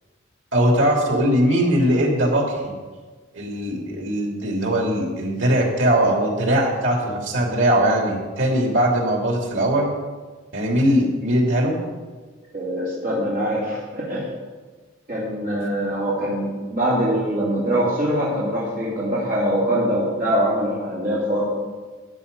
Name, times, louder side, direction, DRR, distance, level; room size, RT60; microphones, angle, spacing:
voice 1, 0.5-2.7 3.3-9.9 10.5-11.8, equal, 85° right, 0 dB, 2.9 m, -20 dB
voice 2, 12.5-14.3 15.1-21.4, equal, 45° right, -8 dB, 3.1 m, -23 dB
12.5 x 8.6 x 5.5 m, 1.4 s
head